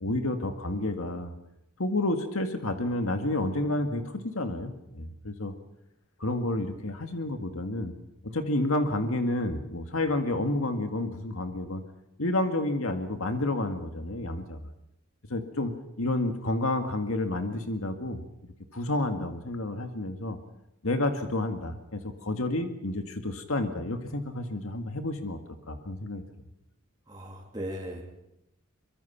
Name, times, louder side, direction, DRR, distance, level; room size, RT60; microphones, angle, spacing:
voice 1, 0.0-1.3 1.8-5.5 6.2-7.9 8.2-11.8 12.2-14.6 15.3-15.7 16.0-18.2 18.7-20.4 20.8-25.4 25.7-26.2, left 1 dB, 75° left, 6 dB, 2.0 m, -30 dB
voice 2, 27.1-28.0, equal, 20° right, -3 dB, 3.2 m, -37 dB
24.5 x 23.0 x 5.9 m, 0.86 s
head